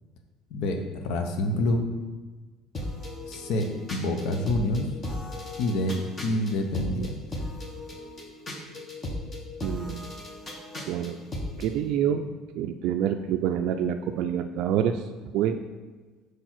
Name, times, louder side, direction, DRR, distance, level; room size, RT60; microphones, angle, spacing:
voice 1, 0.5-1.8 3.3-4.9 5.6-6.0 6.2-7.2, left 1 dB, 75° left, 5 dB, 0.7 m, -27 dB
sound 1, 2.7-11.7, left 1 dB, 25° left, 1.2 m, -37 dB
voice 2, 9.6-10.1 10.9-11.2 11.6-12.3 12.6-15.0 15.3-15.6, right 9 dB, 70° right, 6 dB, 0.3 m, -27 dB
4.7 x 4.5 x 5.9 m, 1.3 s
supercardioid pair, 105°, 0 cm